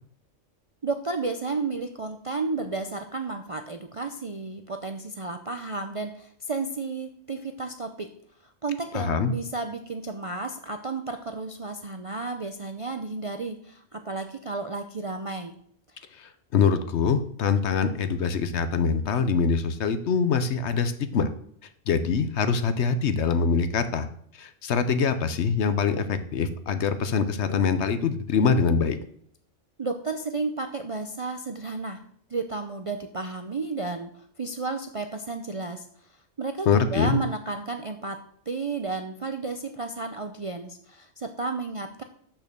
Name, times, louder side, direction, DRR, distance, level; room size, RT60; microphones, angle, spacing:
voice 1, 0.8-8.1 8.6-15.5 15.9-16.0 29.8-32.0 32.3-35.9 36.4-38.2 38.5-42.0, right 3 dB, 45° right, 6 dB, 0.4 m, -32 dB
voice 2, 8.9-9.3 16.2-21.3 21.9-24.1 24.4-29.0 36.7-37.2, left 5 dB, 65° left, 11 dB, 1.0 m, -24 dB
6.4 x 6.1 x 6.7 m, 0.63 s
omnidirectional pair, 1.3 m